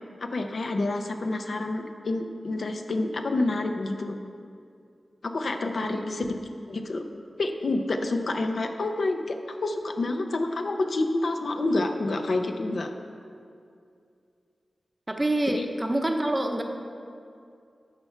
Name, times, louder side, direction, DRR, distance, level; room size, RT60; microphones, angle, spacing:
voice 1, 0.2-4.2 5.2-6.4 6.7-7.1 7.4-12.9 15.6-15.7, left 2 dB, 60° left, 5 dB, 0.6 m, -28 dB
voice 2, 5.8-6.3 15.1-16.6, right 1 dB, 15° right, 4 dB, 0.7 m, -27 dB
13.0 x 5.6 x 4.5 m, 2.4 s
wide cardioid pair, 105°, 0 cm